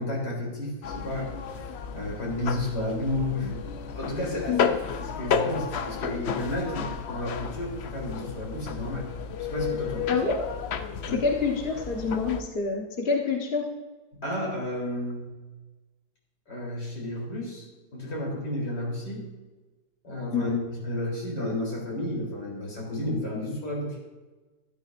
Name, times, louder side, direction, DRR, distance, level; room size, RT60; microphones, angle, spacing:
voice 1, 0.0-1.4 1.9-3.6 3.9-4.6 5.0-9.1 9.4-10.2 11.1-11.2 14.1-15.3 16.5-17.7 17.9-19.3 20.0-24.0, left 1 dB, 80° left, -3 dB, 4.3 m, -32 dB
sound 1, 0.8-12.4, left 7 dB, 65° left, 0.6 m, -32 dB
voice 2, 10.1-10.5 11.1-13.7 20.3-20.6, left 4 dB, 35° left, 0 dB, 1.5 m, -27 dB
12.5 x 12.5 x 2.6 m, 1.2 s
omnidirectional pair, 1.8 m